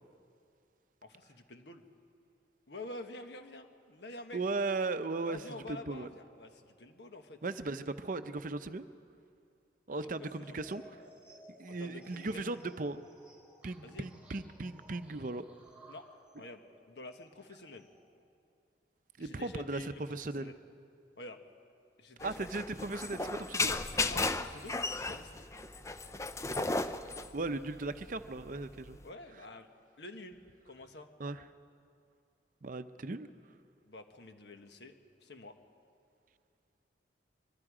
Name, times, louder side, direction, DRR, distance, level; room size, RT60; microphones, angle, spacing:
voice 1, 1.0-1.8 2.7-4.4 5.2-7.8 9.9-10.6 11.7-12.6 13.8-14.1 15.9-16.1 16.4-16.6 16.9-17.9 19.2-20.5 21.2-21.4 22.0-22.5 24.1-24.8 25.1-25.3 29.0-29.7 30.0-30.4 30.6-31.1 33.8-34.9 35.2-35.6, left 2 dB, 70° left, 6 dB, 1.4 m, -48 dB
voice 2, 4.3-5.4 5.7-6.1 7.4-8.8 9.9-11.0 11.6-13.0 13.6-15.4 19.2-20.5 22.2-23.7 27.3-29.0 31.2-31.4 32.6-33.3, right 3 dB, 45° right, 11 dB, 0.6 m, -37 dB
sound 1, 10.1-18.1, right 1 dB, 5° right, 3.9 m, -59 dB
sound 2, 22.2-29.1, left 3 dB, 15° left, 0.5 m, -35 dB
24.5 x 22.5 x 5.0 m, 2.4 s
head